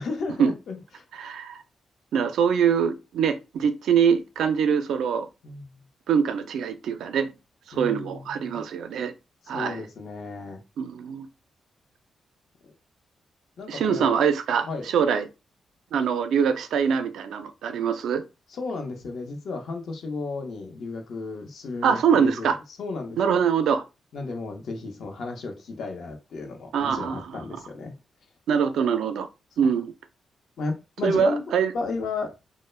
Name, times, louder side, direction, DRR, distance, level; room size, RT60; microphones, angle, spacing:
voice 1, 0.0-1.0 5.4-5.7 7.7-8.6 9.4-10.6 13.6-14.2 14.7-14.9 18.5-22.5 22.8-23.2 24.1-27.9 30.6-31.4 31.7-32.3, left 3 dB, 70° left, 0.7 m, -34 dB
voice 2, 1.1-1.6 2.1-5.3 6.1-7.3 7.7-9.1 9.5-9.8 10.8-11.3 13.7-15.3 15.9-18.2 21.8-22.6 23.2-23.8 26.7-27.4 28.5-29.3 29.6-29.9 31.0-31.7, right 7 dB, 90° right, 0.3 m, -23 dB
2.3 x 2.0 x 3.1 m
cardioid pair, 95°, 0 cm